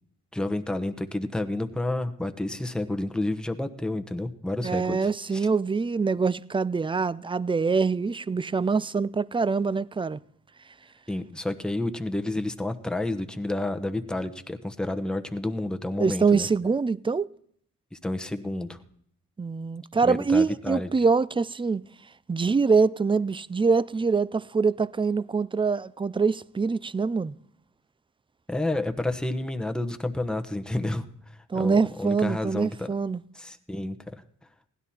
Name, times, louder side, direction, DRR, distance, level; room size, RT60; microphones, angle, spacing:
voice 1, 0.3-5.5 11.1-16.5 17.9-18.8 20.0-20.9 28.5-31.0 31.5-32.9 33.3-34.0, left 1 dB, ahead, 1.1 m, -30 dB
voice 2, 4.6-10.2 16.0-17.3 19.4-21.8 22.3-27.4 31.5-33.2, right 4 dB, 15° right, 0.4 m, -24 dB
16.0 x 11.0 x 4.3 m
cardioid pair, 60°, 35 cm